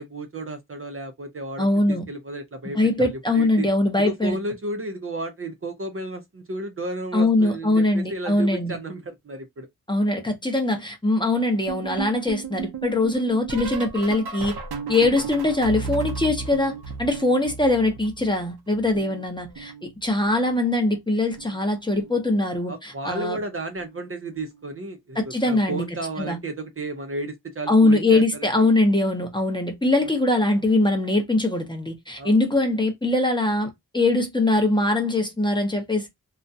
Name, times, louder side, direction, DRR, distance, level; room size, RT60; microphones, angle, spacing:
voice 1, 0.0-3.7 3.9-9.7 22.7-28.6 30.0-30.1 32.2-32.4, right 2 dB, 35° right, 0.5 m, -33 dB
voice 2, 1.6-2.1 2.7-4.4 7.1-8.8 9.9-14.6 14.9-16.7 17.0-23.4 25.2-25.8 26.2-26.4 27.7-36.1, left 2 dB, 15° left, 0.6 m, -22 dB
sound 1, 11.7-18.4 18.7-20.3 21.3-21.7 21.9-22.3 23.8-24.1 24.4-24.7 26.2-26.3, right 5 dB, 85° right, 0.6 m, -35 dB
2.3 x 2.1 x 2.6 m
wide cardioid pair, 115°, 37 cm